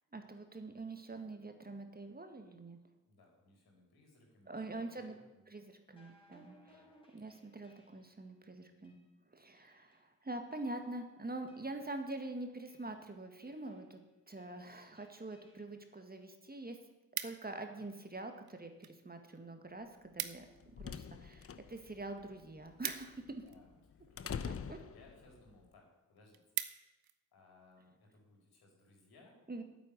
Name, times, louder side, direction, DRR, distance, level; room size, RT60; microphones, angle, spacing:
voice 1, 0.1-2.8 4.5-5.1 5.5-6.7 7.1-9.0 9.3-14.0 14.3-16.8 17.2-23.4 24.5-24.8 29.5-29.6, right 2 dB, 25° right, 5 dB, 2.0 m, -45 dB
voice 2, 3.0-5.5 6.7-6.9 17.6-17.9 23.4-26.4 27.3-29.4, left 2 dB, 70° left, 0 dB, 4.9 m, -64 dB
sound 1, 5.9-8.2 8.8-9.0 9.6-10.1 10.5-11.0 11.5-12.0 12.7-13.0 13.4-13.9 14.4-15.7, equal, 15° left, 4.6 m, -67 dB
sound 2, 16.0-16.1 16.4-17.7 18.4-19.0 19.3-19.4 19.6-19.7 20.0-20.6 20.9-23.8 24.5-24.9 25.4-25.5 25.8-25.9 26.2-27.2 27.6-27.9, right 11 dB, 65° right, 1.0 m, -43 dB
sound 3, 20.3-25.5, left 6 dB, 35° left, 0.8 m, -46 dB
9.0 x 8.3 x 9.4 m, 1.0 s
supercardioid pair, 50°, 39 cm